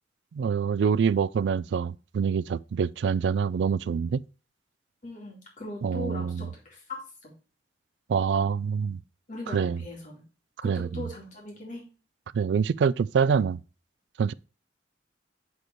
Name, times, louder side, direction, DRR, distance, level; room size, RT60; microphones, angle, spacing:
voice 1, 0.3-4.2 5.8-6.5 8.1-9.0 9.5-9.8 10.6-11.0 12.3-13.6 14.2-14.3, right 6 dB, 70° right, 0.3 m, -25 dB
voice 2, 5.0-7.3 9.3-10.2 10.6-11.8, left 2 dB, 45° left, 2.6 m, -40 dB
6.8 x 4.0 x 4.5 m
head